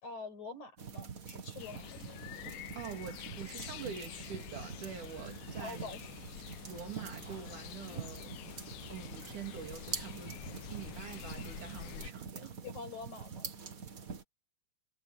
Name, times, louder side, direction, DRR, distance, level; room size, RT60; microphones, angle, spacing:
voice 1, 0.0-2.0 5.6-6.0 12.4-13.5, left 4 dB, 60° left, 7.5 m, -45 dB
sound 1, 0.8-14.2, right 6 dB, 40° right, 1.4 m, -45 dB
sound 2, 1.6-12.1, left 15 dB, 90° left, 2.3 m, -48 dB
voice 2, 2.7-5.9 6.7-8.3 8.9-10.4 10.7-12.5, right 7 dB, 70° right, 3.9 m, -45 dB
omnidirectional pair, 3.8 m